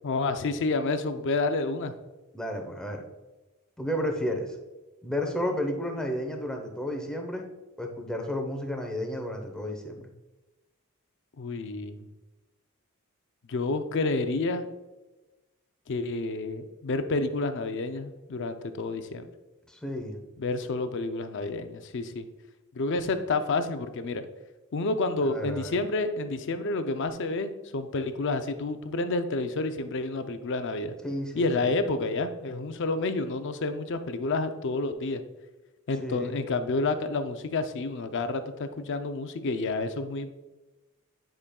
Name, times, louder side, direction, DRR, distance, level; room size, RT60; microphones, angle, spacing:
voice 1, 0.0-1.9 11.4-12.1 13.5-14.7 15.9-19.3 20.4-22.3 22.7-24.2 24.7-30.9 31.4-35.2 35.9-40.3, left 3 dB, 55° left, 8 dB, 0.5 m, -29 dB
voice 2, 2.3-3.0 3.8-4.6 5.0-7.4 7.8-10.0 19.7-20.2 25.2-25.8 31.0-31.8 36.0-36.4, left 1 dB, 5° left, 2 dB, 0.8 m, -32 dB
9.7 x 5.1 x 2.3 m, 1.1 s
head